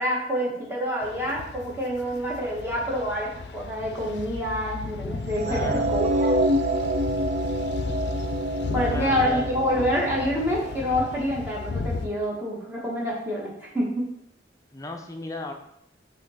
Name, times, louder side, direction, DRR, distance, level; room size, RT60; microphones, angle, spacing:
voice 1, 0.0-6.4 8.7-14.0, equal, 10° right, -5 dB, 1.4 m, -27 dB
sound 1, 1.0-12.1, left 4 dB, 70° left, 0.4 m, -34 dB
voice 2, 5.4-5.9 8.9-9.5 14.7-15.5, left 2 dB, 20° left, 3 dB, 0.6 m, -34 dB
sound 2, 5.4-11.6, right 1 dB, 40° right, 0.5 m, -27 dB
5.4 x 3.7 x 5.7 m, 0.74 s
head